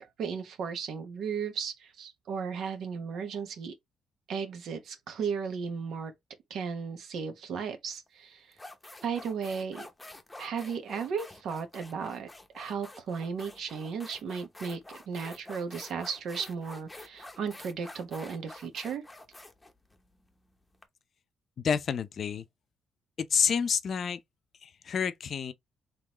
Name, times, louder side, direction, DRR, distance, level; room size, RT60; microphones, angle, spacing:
voice 1, 0.0-3.7 4.3-6.1 6.5-8.5 9.0-9.9 10.4-12.3 12.5-19.0, right 6 dB, 70° right, 1.0 m, -35 dB
sound 1, 7.9-8.1 8.5-20.8, left 2 dB, 15° left, 0.8 m, -48 dB
voice 2, 21.6-22.5 23.3-24.2 24.6-25.5, left 7 dB, 55° left, 0.5 m, -29 dB
3.8 x 3.1 x 2.9 m
cardioid pair, 90°, 0 cm